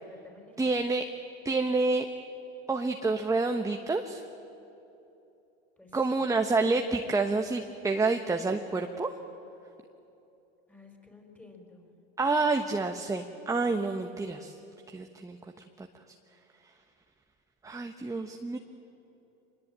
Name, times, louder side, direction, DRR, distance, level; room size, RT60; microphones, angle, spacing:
voice 1, 0.0-0.7 5.8-6.3 10.7-12.0, left 3 dB, 5° left, 3 dB, 4.8 m, -53 dB
voice 2, 0.6-1.0 1.4-2.1 2.7-4.3 5.9-9.1 12.2-14.6 14.9-15.9 17.6-18.6, right 3 dB, 10° right, 5 dB, 1.2 m, -28 dB
25.0 x 21.5 x 8.9 m, 2.8 s
supercardioid pair, 110°, 29 cm